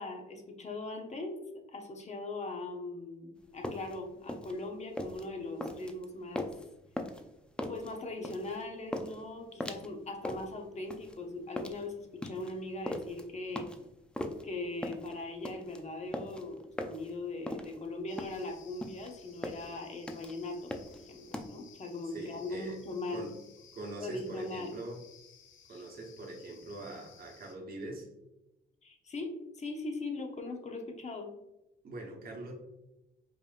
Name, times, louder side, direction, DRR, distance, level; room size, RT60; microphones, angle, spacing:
voice 1, 0.0-1.4 1.7-6.5 7.7-13.7 14.4-23.3 24.0-24.8 25.7-25.8 28.8-31.3, left 2 dB, 35° left, 4 dB, 0.8 m, -40 dB
sound 1, 3.4-21.5, left 1 dB, 5° left, 0.4 m, -40 dB
sound 2, 18.1-27.6, left 7 dB, 75° left, 0.7 m, -58 dB
voice 2, 22.1-22.8 23.1-23.3 23.7-25.0 25.7-28.1 31.8-32.5, right 2 dB, 50° right, -1 dB, 1.1 m, -43 dB
5.1 x 2.9 x 2.5 m, 0.94 s
cardioid pair, 90°, 20 cm